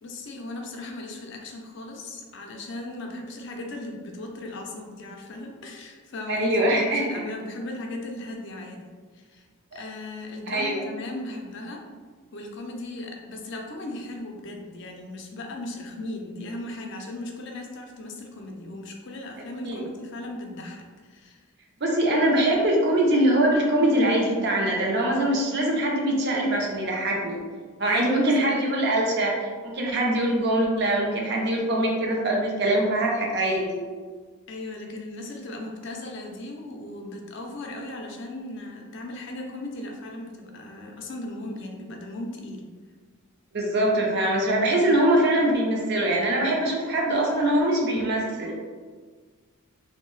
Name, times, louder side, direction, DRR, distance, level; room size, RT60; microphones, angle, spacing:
voice 1, 0.0-9.5 9.7-11.8 12.3-21.5 27.8-28.5 34.5-42.6, left 2 dB, 55° left, 2 dB, 0.4 m, -37 dB
voice 2, 6.3-7.0 10.5-10.8 19.6-19.8 21.8-27.4 27.8-33.8 43.5-48.6, right 1 dB, 50° right, -1 dB, 0.5 m, -23 dB
2.6 x 2.0 x 3.0 m, 1.5 s
head